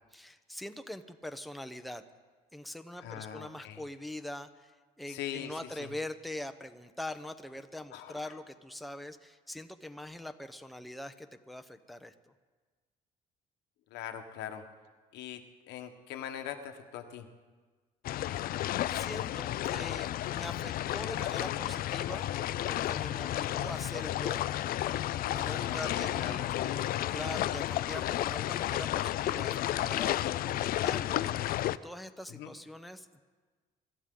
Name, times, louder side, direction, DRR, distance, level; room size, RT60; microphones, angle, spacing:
voice 1, 0.1-2.0 2.5-12.1 18.9-22.3 22.7-24.4 25.3-26.5 27.1-33.2, left 1 dB, ahead, 7 dB, 0.8 m, -43 dB
voice 2, 3.0-3.8 5.1-5.9 7.9-8.1 13.9-14.6 15.1-17.2 25.3-27.0 30.3-30.7 32.3-32.5, left 10 dB, 90° left, 6 dB, 1.3 m, -41 dB
sound 1, 18.0-31.8, left 13 dB, 60° left, 0.4 m, -32 dB
25.0 x 13.5 x 3.8 m, 1.4 s
cardioid pair, 110°, 17 cm